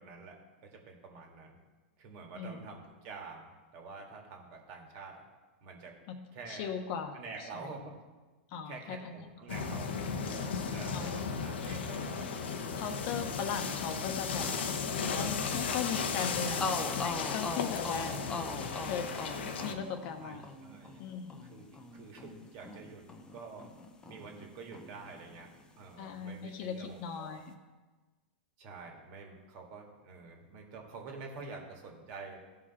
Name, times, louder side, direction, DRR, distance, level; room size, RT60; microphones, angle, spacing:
voice 1, 0.0-1.6 2.0-3.4 3.7-5.2 5.6-6.0 6.3-6.7 7.1-8.0 8.6-12.3 20.1-21.1 21.4-23.1 23.3-23.7 24.0-25.5 25.8-27.4 28.6-32.4, right 4 dB, 50° right, 1 dB, 2.0 m, -48 dB
voice 2, 6.5-7.8 8.5-9.3 10.9-11.2 12.8-14.5 15.1-16.7 17.0-18.2 18.8-19.1 19.6-20.4 21.0-21.4 26.0-27.5, left 6 dB, 50° left, 6 dB, 1.1 m, -38 dB
sound 1, 9.5-19.7, left 5 dB, 80° left, 1.0 m, -35 dB
sound 2, 16.6-24.5 24.7-25.9, left 3 dB, 15° left, 0.8 m, -41 dB
15.5 x 5.2 x 4.2 m, 1.3 s
hypercardioid pair, 120°, 6 cm